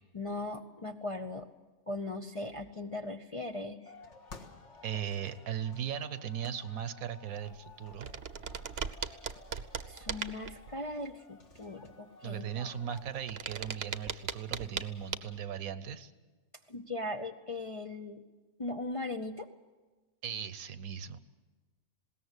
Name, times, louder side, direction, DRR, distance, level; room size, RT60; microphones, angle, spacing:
voice 1, 0.1-1.5 1.9-3.9 9.9-12.7 16.7-18.2 18.6-19.5, left 2 dB, 35° left, 4 dB, 0.6 m, -39 dB
sound 1, 3.9-13.9, left 3 dB, 55° left, 2.0 m, -55 dB
voice 2, 4.8-8.1 12.2-16.1 20.2-21.2, right 9 dB, 75° right, 13 dB, 1.3 m, -38 dB
sound 2, 7.5-7.6 7.9-10.7 12.9-14.9 15.1-15.2, right 7 dB, 50° right, 1.0 m, -38 dB
20.5 x 17.5 x 8.1 m, 1.3 s
omnidirectional pair, 1.5 m